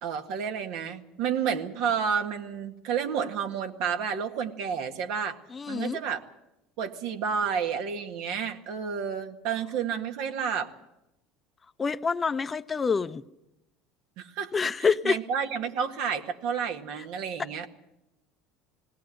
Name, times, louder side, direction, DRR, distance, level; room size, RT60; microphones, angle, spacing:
voice 1, 0.0-5.4 5.7-6.2 6.8-10.7 14.2-14.5 14.8-17.7, right 7 dB, 70° right, 1.9 m, -30 dB
voice 2, 5.5-6.0 11.8-13.2 14.5-15.2, left 5 dB, 25° left, 0.7 m, -27 dB
20.0 x 17.5 x 7.8 m
supercardioid pair, 95°, 0 cm